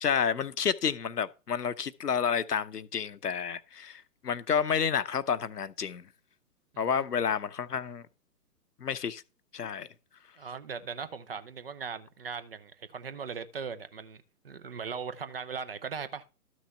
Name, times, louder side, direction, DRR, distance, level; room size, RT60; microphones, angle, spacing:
voice 1, 0.0-6.0 6.8-8.0 8.8-9.2 9.5-9.9, left 7 dB, 75° left, 0.8 m, -30 dB
voice 2, 10.4-16.2, right 6 dB, 40° right, 0.7 m, -39 dB
12.5 x 6.2 x 3.2 m
figure-of-eight pair, 130°, 47 cm